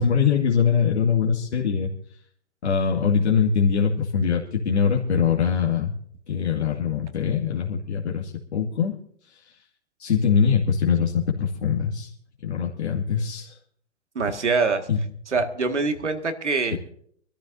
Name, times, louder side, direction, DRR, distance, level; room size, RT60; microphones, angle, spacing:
voice 1, 0.0-1.9 2.6-5.9 6.3-8.9 10.0-12.1 12.4-13.6 14.9-15.0 16.7-16.8, left 6 dB, 75° left, -2 dB, 2.2 m, -22 dB
voice 2, 14.2-14.9 15.3-16.7, right 4 dB, 85° right, 6 dB, 2.1 m, -24 dB
25.5 x 13.5 x 2.7 m, 0.64 s
hypercardioid pair, 120°, 34 cm